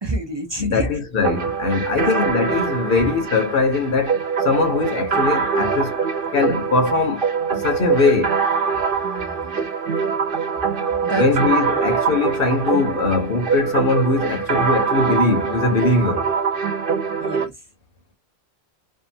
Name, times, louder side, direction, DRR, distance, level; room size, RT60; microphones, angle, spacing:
voice 1, 0.0-0.9 9.0-9.7 11.0-11.8 17.2-17.5, right 2 dB, 30° right, 0.5 m, -29 dB
voice 2, 0.6-6.0 6.3-8.3 11.1-16.3, left 3 dB, 60° left, 0.9 m, -21 dB
sound 1, 1.2-17.5, right 6 dB, 55° right, 1.0 m, -23 dB
2.6 x 2.5 x 2.6 m
omnidirectional pair, 1.1 m